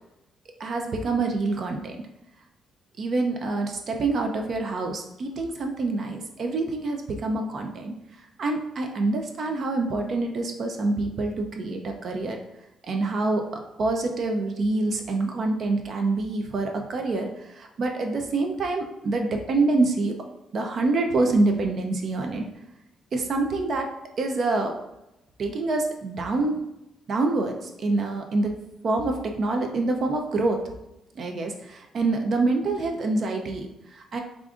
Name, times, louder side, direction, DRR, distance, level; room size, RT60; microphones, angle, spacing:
voice 1, 0.6-2.1 3.0-7.9 8.4-12.4 12.8-20.2 20.5-22.5 23.1-23.9 24.2-24.8 25.4-26.6 27.1-28.6 28.8-30.6 31.2-34.2, right 3 dB, 55° right, 3 dB, 0.4 m, -26 dB
4.9 x 2.4 x 2.4 m, 0.91 s
cardioid pair, 90°, 0 cm